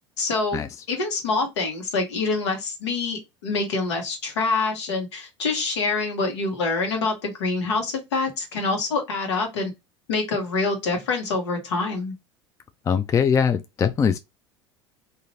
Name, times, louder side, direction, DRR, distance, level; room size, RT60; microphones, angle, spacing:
voice 1, 0.2-0.6 0.9-9.7 10.1-12.1, left 3 dB, 70° left, 1.2 m, -26 dB
voice 2, 12.9-14.2, left 7 dB, 20° left, 0.3 m, -21 dB
3.8 x 2.6 x 2.9 m
figure-of-eight pair, 70°, 15 cm